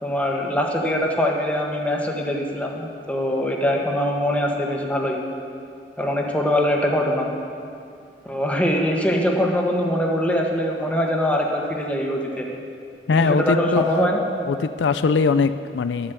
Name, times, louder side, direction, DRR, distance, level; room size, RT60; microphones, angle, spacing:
voice 1, 0.0-5.2 6.0-7.3 8.2-12.5 13.1-14.2, equal, 10° left, 0 dB, 1.3 m, -22 dB
voice 2, 13.1-13.8 14.5-16.1, left 5 dB, 90° left, 12 dB, 0.4 m, -21 dB
11.0 x 9.8 x 6.9 m, 2.4 s
head